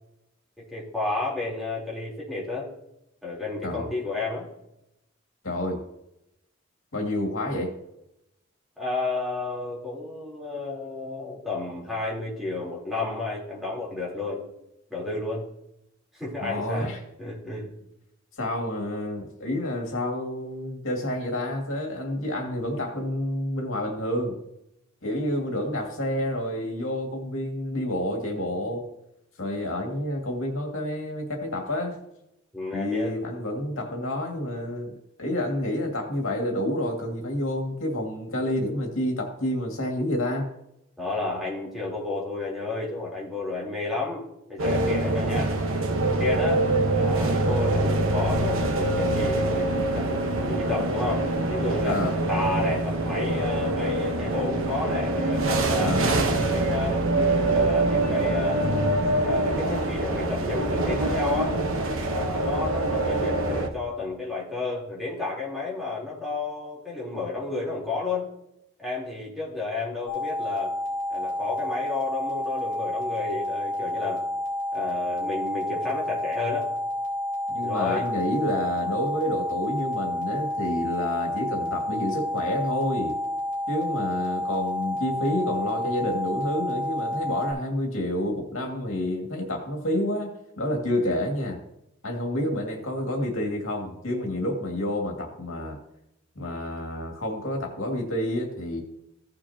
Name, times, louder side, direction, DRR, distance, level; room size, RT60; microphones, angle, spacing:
voice 1, 0.7-2.7 3.2-4.5 8.8-14.4 14.9-15.4 16.1-16.9 17.2-17.7 32.5-33.2 41.0-44.2 44.5-45.6 46.1-50.1 50.4-56.0 56.3-58.6 59.2-61.6 62.1-68.3 68.8-70.7 71.1-74.2 74.7-76.7 77.6-78.1, left 3 dB, ahead, -6 dB, 3.5 m, -31 dB
voice 2, 5.4-5.8 6.9-7.7 16.4-17.0 18.4-24.4 25.0-28.9 29.4-32.0 32.7-40.5 51.8-52.2 55.8-56.1 77.5-83.1 83.7-91.6 92.0-95.8 96.4-98.8, left 1 dB, 80° left, 1 dB, 2.3 m, -29 dB
sound 1, 44.6-63.7, right 2 dB, 80° right, 1.1 m, -24 dB
sound 2, 70.1-87.5, left 1 dB, 40° right, 3.6 m, -30 dB
16.0 x 6.8 x 2.9 m, 0.83 s
head